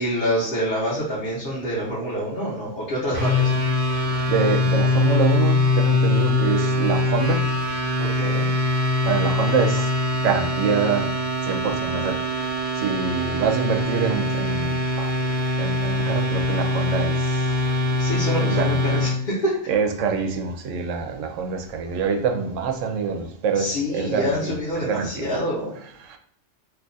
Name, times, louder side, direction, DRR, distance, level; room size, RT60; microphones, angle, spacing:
voice 1, 0.0-3.6 8.0-8.5 18.0-19.5 23.5-25.8, equal, 45° left, -8 dB, 1.1 m, -26 dB
sound 1, 3.1-19.2, left 2 dB, 40° right, 0.9 m, -23 dB
voice 2, 4.3-7.4 9.0-9.9 10.2-11.1 11.4-15.1 15.6-17.5 18.4-19.0 19.7-25.3 26.1-26.2, right 5 dB, 85° right, 4 dB, 1.0 m, -25 dB
2.8 x 2.4 x 3.9 m, 0.64 s
omnidirectional pair, 1.3 m